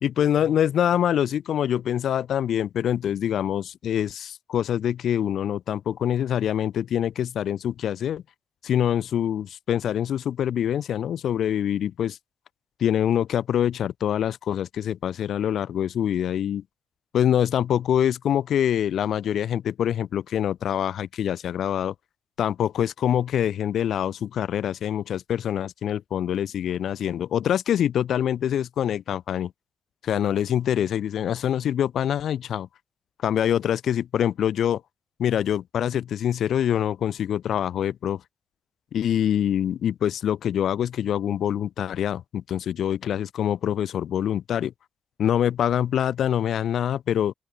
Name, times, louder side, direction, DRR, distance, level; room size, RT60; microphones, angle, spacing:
voice 1, 0.0-8.2 8.6-12.2 12.8-16.6 17.1-21.9 22.4-29.5 30.0-32.7 33.2-34.8 35.2-38.2 38.9-44.7 45.2-47.3, left 10 dB, 75° left, 2.9 m, -25 dB
open air
cardioid pair, 80°, 0 cm